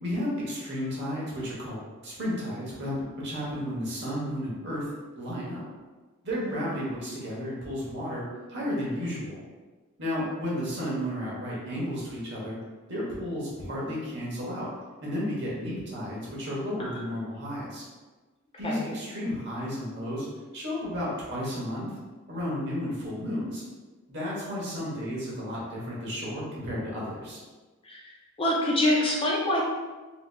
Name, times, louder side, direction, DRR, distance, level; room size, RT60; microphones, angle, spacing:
voice 1, 0.0-4.8 5.1-5.6 6.2-8.2 8.5-9.4 10.0-12.6 12.9-14.7 15.0-17.8 18.6-20.3 20.5-21.9 22.3-23.6 24.1-27.4, equal, 50° right, -5 dB, 1.0 m, -33 dB
voice 2, 28.4-29.6, left 1 dB, 25° left, -3 dB, 0.4 m, -25 dB
3.2 x 2.8 x 2.2 m, 1.3 s
head